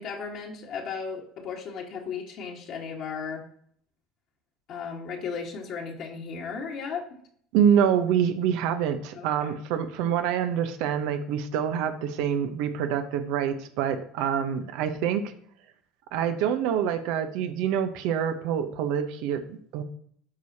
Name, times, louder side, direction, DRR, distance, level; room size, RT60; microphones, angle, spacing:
voice 1, 0.0-3.5 4.7-7.2 9.1-9.6, left 5 dB, 60° left, -2 dB, 1.6 m, -35 dB
voice 2, 7.5-15.3 16.1-19.8, right 8 dB, 70° right, 9 dB, 0.9 m, -26 dB
12.5 x 4.8 x 2.8 m, 0.62 s
hypercardioid pair, 75°, 0 cm